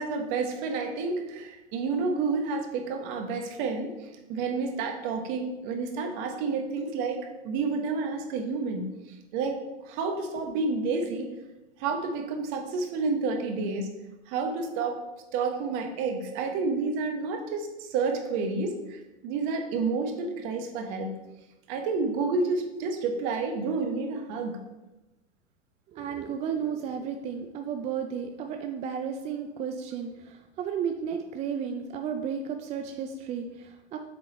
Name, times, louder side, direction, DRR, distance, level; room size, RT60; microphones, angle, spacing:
voice 1, 0.0-3.9 4.3-8.9 9.3-11.3 11.8-13.9 14.3-15.0 15.3-21.2 21.7-24.6, right 4 dB, 50° right, 4 dB, 1.2 m, -30 dB
voice 2, 25.9-34.0, right 7 dB, 20° right, 5 dB, 0.3 m, -33 dB
7.8 x 3.7 x 4.1 m, 1.0 s
hypercardioid pair, 100°, 34 cm